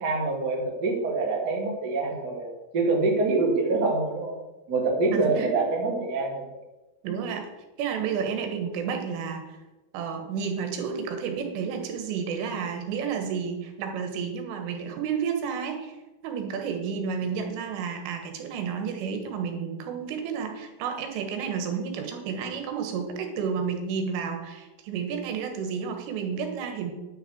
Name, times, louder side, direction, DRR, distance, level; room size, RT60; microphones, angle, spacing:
voice 1, 0.0-4.3 4.7-6.4 7.1-7.2, right 3 dB, 35° right, -2 dB, 1.7 m, -25 dB
voice 2, 5.1-5.7 7.0-7.5 7.8-9.6 9.9-16.0 16.2-26.9, right 6 dB, 80° right, 4 dB, 3.8 m, -31 dB
9.8 x 5.8 x 8.5 m, 1.1 s
omnidirectional pair, 5.8 m